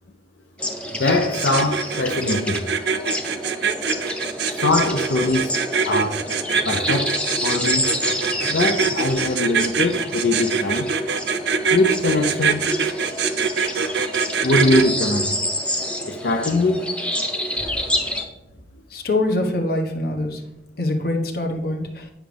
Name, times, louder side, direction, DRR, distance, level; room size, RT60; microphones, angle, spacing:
sound 1, 0.6-18.2, equal, 5° left, 0.8 m, -28 dB
voice 1, 1.0-2.7 4.5-5.5 5.9-6.2 6.6-7.9 8.5-10.9 11.7-12.7 14.4-15.3 16.1-16.9, left 2 dB, 80° left, 0.6 m, -22 dB
sound 2, 1.2-14.8, right 6 dB, 75° right, 0.6 m, -23 dB
voice 2, 18.9-20.4 20.8-22.1, left 2 dB, 55° left, 1.2 m, -24 dB
10.0 x 6.3 x 3.4 m
head